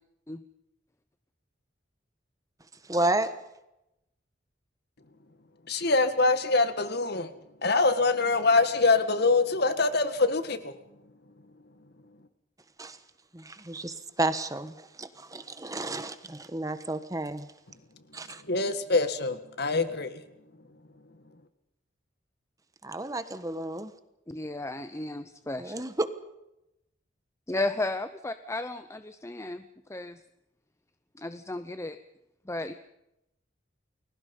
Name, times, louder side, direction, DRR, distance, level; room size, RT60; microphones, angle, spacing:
voice 1, 2.9-3.3 12.8-13.0 13.3-17.5 18.1-18.4 22.8-23.9 25.6-26.1, right 2 dB, 20° right, 1.3 m, -31 dB
voice 2, 5.7-7.3 7.6-10.8 18.4-20.2, left 3 dB, 55° left, 1.8 m, -24 dB
voice 3, 24.3-25.7 27.5-29.6 29.9-30.2 31.2-32.0 32.5-32.7, left 2 dB, 15° left, 0.7 m, -34 dB
30.0 x 22.0 x 5.5 m
head